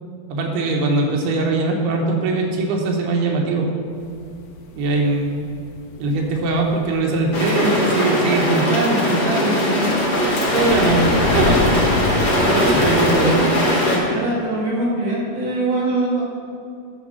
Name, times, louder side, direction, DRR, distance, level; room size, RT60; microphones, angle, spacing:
voice 1, 0.3-3.7 4.8-5.5 6.0-10.0 10.5-11.1 11.3-12.0 12.7-13.4, right 2 dB, 80° right, 0 dB, 3.2 m, -21 dB
sound 1, 4.0-8.6 8.9-9.1 9.5-13.3, left 3 dB, 85° left, 2.9 m, -28 dB
sound 2, 7.3-14.0, equal, 50° left, 1.2 m, -19 dB
voice 2, 12.4-12.7 13.1-13.4 13.8-16.3, right 2 dB, 50° right, -7 dB, 2.6 m, -23 dB
10.5 x 4.7 x 6.2 m, 2.4 s
omnidirectional pair, 4.6 m